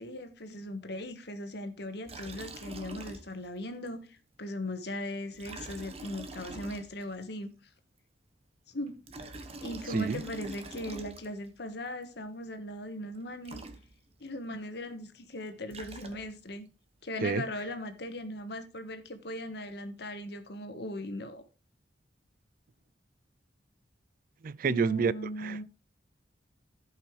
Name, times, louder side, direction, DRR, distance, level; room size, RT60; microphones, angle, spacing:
voice 1, 0.0-7.5 8.7-9.0 9.6-13.6 14.2-16.6 17.0-21.4 24.6-25.6, left 1 dB, 65° left, 1.4 m, -39 dB
Liquid, 2.0-3.6 3.9-4.0 5.3-7.2 8.9-11.5 13.1-13.2 13.4-14.3 15.4-16.5, right 2 dB, 35° right, 1.1 m, -45 dB
voice 2, 9.9-10.2 17.2-17.4 24.4-25.1 25.4-25.6, right 5 dB, 50° right, 0.4 m, -28 dB
15.0 x 5.5 x 3.2 m
head